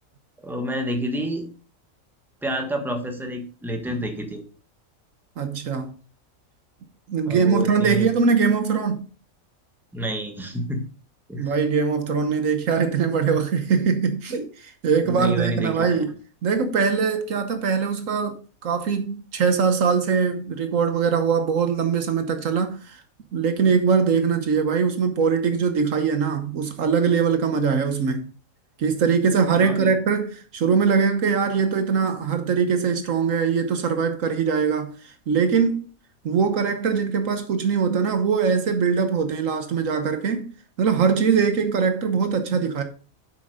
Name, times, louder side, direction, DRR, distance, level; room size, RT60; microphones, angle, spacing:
voice 1, 0.4-1.5 2.4-4.4 7.3-8.1 9.9-10.8 11.3-11.5 15.0-16.0 29.6-29.9, equal, ahead, 1.4 m, -28 dB
voice 2, 5.4-5.9 7.1-9.0 11.4-16.2 16.4-18.4 18.6-23.0 23.3-28.3 28.8-35.9 36.2-40.5 40.8-42.8, right 6 dB, 70° right, 1.4 m, -22 dB
7.9 x 6.1 x 5.0 m
omnidirectional pair, 1.5 m